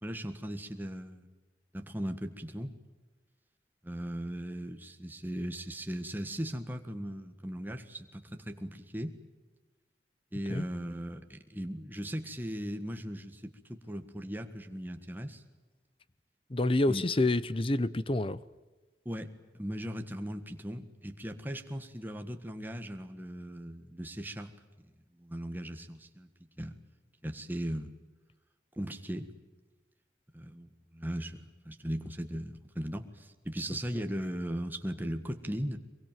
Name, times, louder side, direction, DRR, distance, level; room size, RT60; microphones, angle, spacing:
voice 1, 0.0-1.3 1.7-2.7 3.8-9.2 10.3-15.4 16.9-17.0 19.0-24.5 25.1-26.3 26.6-26.7 27.2-27.9 28.8-29.3 30.3-35.8, equal, 10° right, 1.6 m, -38 dB
voice 2, 16.5-18.4, left 2 dB, 30° left, 0.7 m, -28 dB
24.0 x 23.0 x 9.2 m
head